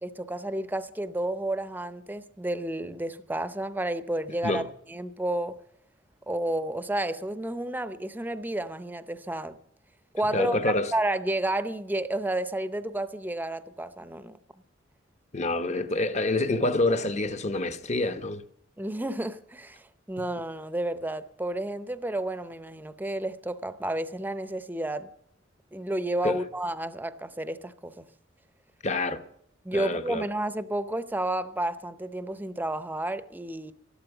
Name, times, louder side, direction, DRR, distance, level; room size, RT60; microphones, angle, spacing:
voice 1, 0.0-4.6 4.9-5.6 6.3-9.6 10.1-14.4 18.8-25.1 25.7-28.0 29.6-33.7, right 1 dB, 10° right, 0.7 m, -31 dB
voice 2, 10.3-10.9 15.3-18.4 26.2-26.4 28.8-29.2 29.7-30.2, left 2 dB, 35° left, 0.9 m, -27 dB
13.0 x 11.5 x 7.0 m
head